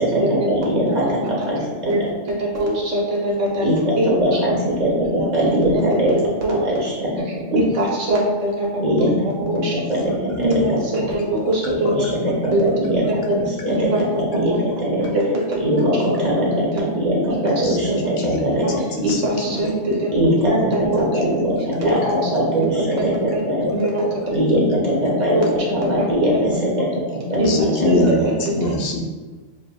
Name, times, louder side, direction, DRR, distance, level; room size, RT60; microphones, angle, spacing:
voice 1, 0.0-2.1 3.6-6.1 6.5-7.2 8.8-10.8 11.9-15.1 15.6-18.7 20.1-23.7 24.3-28.1, equal, 35° right, -5 dB, 1.4 m, -21 dB
voice 2, 2.5-3.6 4.0-4.1 5.4-5.6 6.4-6.6 7.5-9.2 9.4-9.7 10.4-12.0 12.5-12.7 13.1-13.4 13.7-14.0 15.0-15.2 15.5-15.8 16.4-16.5 16.7-16.9 18.6-18.7 19.0-19.9 20.4-21.1 21.8-22.1 22.6-22.7 23.3-23.4 23.7-24.0 25.3-25.5 26.0-26.1 27.3-28.0 28.6-28.7, right 1 dB, 85° right, -3 dB, 1.3 m, -22 dB
voice 3, 11.4-12.3 13.6-13.7 17.6-17.8 18.2-18.4 18.7-19.8 20.1-20.2 21.2-21.4 21.9-22.2 23.7-23.8 24.0-24.5 24.7-24.8 27.4-29.0, left 2 dB, 60° left, 1 dB, 0.8 m, -25 dB
7.2 x 2.6 x 2.3 m, 1.3 s
omnidirectional pair, 1.2 m